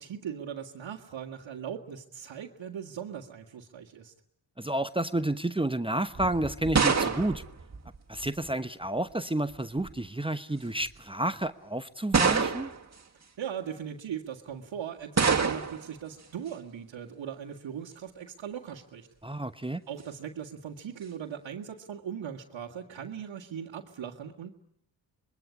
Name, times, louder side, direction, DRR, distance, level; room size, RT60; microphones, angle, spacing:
voice 1, 0.0-4.1 13.4-19.1 19.9-24.5, right 8 dB, 65° right, -2 dB, 2.2 m, -39 dB
voice 2, 4.6-7.4 8.1-12.7 19.2-19.8, right 1 dB, 10° right, 11 dB, 1.1 m, -30 dB
sound 1, 6.1-8.5 9.5-10.0 10.8-10.9 12.1-12.9 15.2-15.9, right 5 dB, 30° right, 2.4 m, -27 dB
25.5 x 21.0 x 9.9 m, 0.72 s
supercardioid pair, 50°, 49 cm